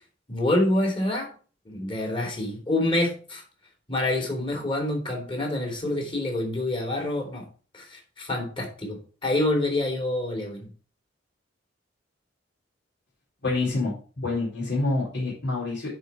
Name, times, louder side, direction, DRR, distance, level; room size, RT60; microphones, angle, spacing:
voice 1, 0.3-1.3 1.6-3.4 3.9-7.5 7.7-10.7, left 1 dB, 30° left, 1 dB, 3.2 m, -27 dB
voice 2, 13.4-16.0, left 2 dB, 65° left, -5 dB, 4.2 m, -27 dB
10.0 x 4.9 x 4.6 m, 0.38 s
head